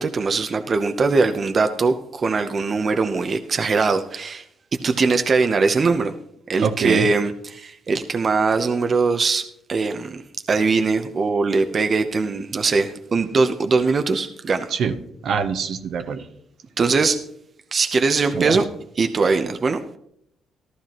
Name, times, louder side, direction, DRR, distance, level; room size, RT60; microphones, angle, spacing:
voice 1, 0.0-4.5 4.8-6.1 6.5-10.2 10.5-14.7 16.8-17.2 17.7-18.7 18.9-19.8, right 4 dB, 40° right, 7 dB, 0.8 m, -21 dB
voice 2, 6.6-7.1 14.7-14.9 15.2-16.2 18.3-18.6, right 6 dB, 70° right, 8 dB, 1.0 m, -23 dB
14.5 x 12.5 x 3.0 m, 0.73 s
cardioid pair, 90°, 0 cm